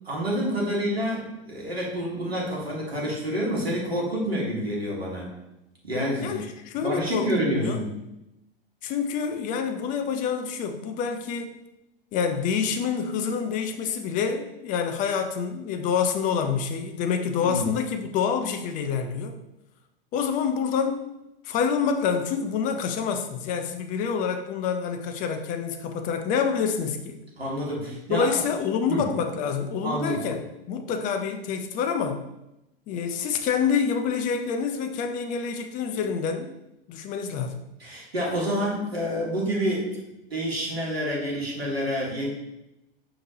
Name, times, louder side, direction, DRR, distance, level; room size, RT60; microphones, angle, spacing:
voice 1, 0.0-5.3 5.8-6.4 6.8-7.9 17.4-17.7 27.4-28.3 28.9-29.1 29.8-30.2 37.8-40.0 40.3-42.3, equal, 85° right, -3 dB, 1.1 m, -28 dB
voice 2, 6.2-7.8 8.8-11.5 12.1-19.4 20.1-21.0 21.4-27.2 28.1-32.2 32.9-36.5 36.9-37.6, left 6 dB, 25° left, 6 dB, 0.4 m, -27 dB
5.2 x 2.8 x 2.7 m, 0.91 s
figure-of-eight pair, 90°, 30 cm